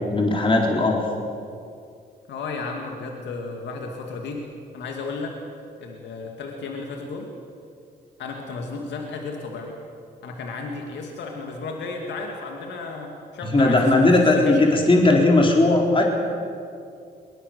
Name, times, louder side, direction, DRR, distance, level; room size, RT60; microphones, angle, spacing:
voice 1, 0.1-1.0 13.5-16.0, left 2 dB, 30° left, 0 dB, 4.0 m, -17 dB
voice 2, 2.3-4.4 4.7-5.4 5.8-7.3 8.2-9.8 10.2-14.7, left 3 dB, 80° left, 2 dB, 2.5 m, -33 dB
22.0 x 20.5 x 6.9 m, 2.4 s
cardioid pair, 65°, 18 cm